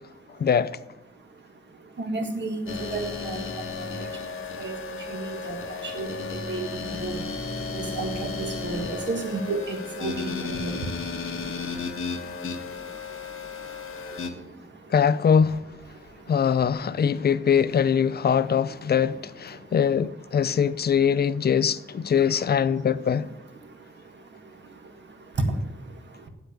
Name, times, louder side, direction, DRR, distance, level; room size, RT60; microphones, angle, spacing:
voice 1, 0.4-0.7 14.9-15.6 16.3-23.3, left 7 dB, 50° left, 0.5 m, -22 dB
voice 2, 1.7-14.9 15.9-16.4 17.2-17.3 19.5-19.7 20.4-20.5 23.6-26.3, right 3 dB, 60° right, 1.6 m, -35 dB
sound 1, 2.7-14.3, left 4 dB, 75° left, 1.4 m, -34 dB
8.5 x 8.0 x 9.1 m
wide cardioid pair, 135°, 21 cm